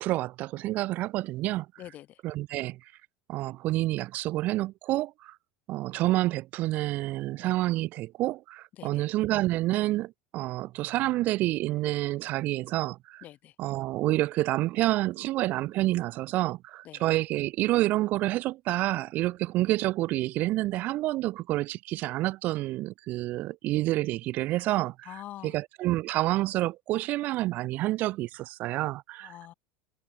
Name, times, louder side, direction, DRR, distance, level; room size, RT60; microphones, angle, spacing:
voice 1, 0.0-1.7 2.2-2.8 3.3-5.4 5.7-13.2 13.6-29.3, right 17 dB, 50° right, 0.5 m, -28 dB
voice 2, 1.8-2.2 8.8-9.1 13.2-13.5 16.8-17.0 25.0-25.6 29.2-29.5, left 13 dB, 50° left, 6.7 m, -45 dB
hypercardioid pair, 90°, 4 cm